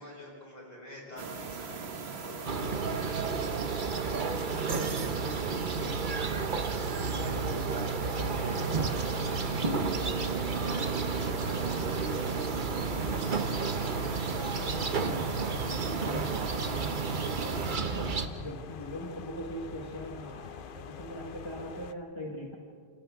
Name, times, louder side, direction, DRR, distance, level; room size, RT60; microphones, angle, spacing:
voice 1, 0.0-6.0 7.2-10.4 10.6-15.5, left 2 dB, 45° left, -4 dB, 8.2 m, -48 dB
sound 1, 1.2-17.8, right 5 dB, 90° right, 1.4 m, -40 dB
sound 2, 2.5-18.3, right 4 dB, 55° right, 1.2 m, -31 dB
voice 2, 5.5-6.0 7.1-8.1 14.7-15.1 16.0-22.6, equal, 25° left, -1 dB, 1.8 m, -42 dB
sound 3, 8.5-21.9, left 7 dB, 60° left, 0.9 m, -45 dB
28.5 x 28.0 x 3.8 m, 2.1 s
omnidirectional pair, 1.0 m